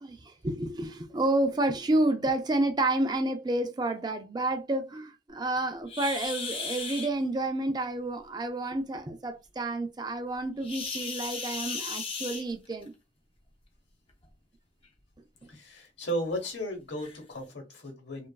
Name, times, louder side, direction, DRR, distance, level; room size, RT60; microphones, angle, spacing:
voice 1, 0.0-12.9, right 2 dB, 20° right, 0.4 m, -30 dB
sound 1, 5.9-7.1 10.6-12.9 14.1-14.3 14.8-14.9 15.5-15.6 16.4-16.5 17.0-17.2, left 4 dB, 30° left, 0.5 m, -36 dB
voice 2, 15.5-18.3, equal, 70° left, 1.0 m, -35 dB
3.0 x 2.3 x 2.3 m
head